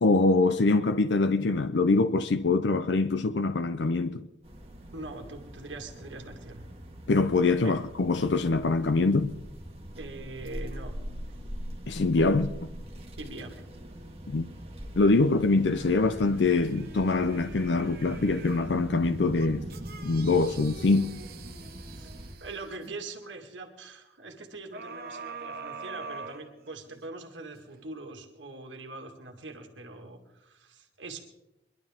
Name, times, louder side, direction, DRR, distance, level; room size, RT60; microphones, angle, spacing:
voice 1, 0.0-4.3 7.1-9.4 11.9-12.6 14.3-14.4 14.9-19.7 20.0-21.2, left 3 dB, 75° left, 0.6 m, -24 dB
sound 1, 4.4-22.3, equal, 35° right, 1.9 m, -42 dB
voice 2, 4.9-6.6 7.6-7.8 10.0-11.0 11.3-11.4 13.2-13.7 21.9-22.1 22.4-31.2, right 2 dB, 90° right, 1.9 m, -42 dB
sound 2, 15.6-18.8 19.3-23.0 24.7-27.0 27.6-27.7, right 4 dB, 55° right, 1.0 m, -44 dB
23.0 x 11.5 x 3.6 m
head